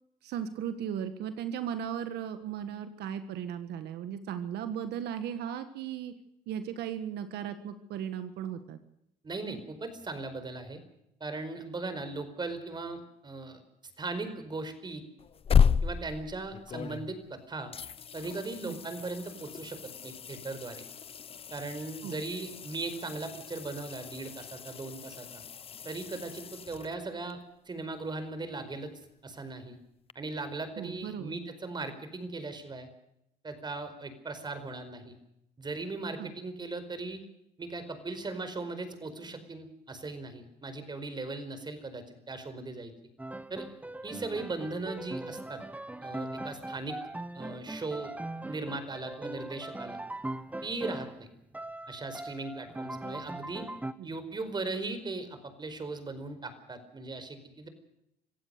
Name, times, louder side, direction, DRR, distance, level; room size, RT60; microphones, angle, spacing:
voice 1, 0.2-6.1 6.5-8.8 18.6-18.8 22.0-22.2 30.8-31.4 36.2-36.3 54.0-54.1, right 9 dB, 75° right, 9 dB, 1.6 m, -36 dB
voice 2, 9.2-10.8 11.2-13.6 14.0-15.0 15.8-17.7 18.1-20.8 21.5-25.4 25.8-27.4 27.7-28.9 29.2-29.8 30.1-32.9 33.4-35.1 35.6-37.2 37.6-42.9 43.5-43.7 44.0-45.6 46.0-47.0 47.3-48.1 48.4-50.0 50.6-51.3 51.9-53.6 54.0-57.7, right 3 dB, 25° right, 10 dB, 4.8 m, -38 dB
sound 1, 15.2-17.4 17.7-27.3 30.1-30.2, left 7 dB, 35° left, 0.7 m, -33 dB
Piano, 43.2-51.2 51.5-53.9, right 2 dB, 10° right, 1.1 m, -40 dB
26.0 x 16.0 x 6.7 m, 0.81 s
cardioid pair, 110°, 17 cm